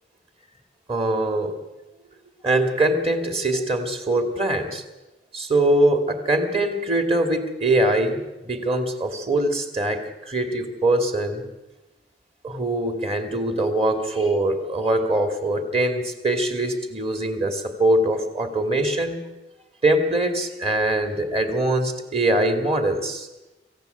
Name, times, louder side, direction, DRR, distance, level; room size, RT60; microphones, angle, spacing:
voice 1, 0.9-1.5 2.4-4.8 5.3-11.5 12.4-19.2 19.8-23.3, right 1 dB, 35° right, 6 dB, 2.4 m, -22 dB
25.5 x 15.5 x 8.1 m, 1.0 s
head